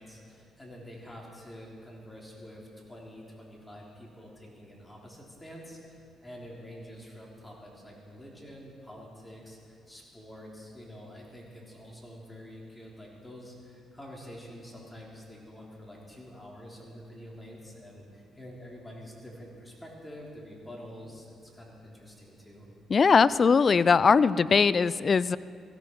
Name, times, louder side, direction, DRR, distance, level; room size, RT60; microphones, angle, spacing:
voice 1, 0.0-22.7, equal, 10° left, -3 dB, 3.4 m, -47 dB
voice 2, 22.9-25.4, left 5 dB, 40° left, 18 dB, 0.4 m, -21 dB
17.0 x 17.0 x 4.6 m, 2.3 s
cardioid pair, 90°, 0 cm